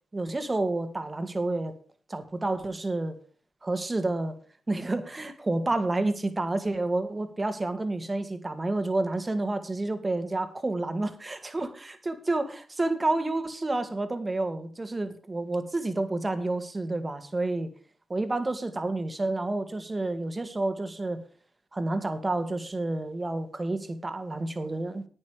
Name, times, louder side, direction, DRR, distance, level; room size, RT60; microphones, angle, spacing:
voice 1, 0.1-1.7 2.1-3.2 3.6-4.4 4.7-17.7 18.1-21.2 21.7-25.1, right 2 dB, 30° right, 10 dB, 1.9 m, -29 dB
9.9 x 9.4 x 5.0 m, 0.42 s
hypercardioid pair, 40°, 0 cm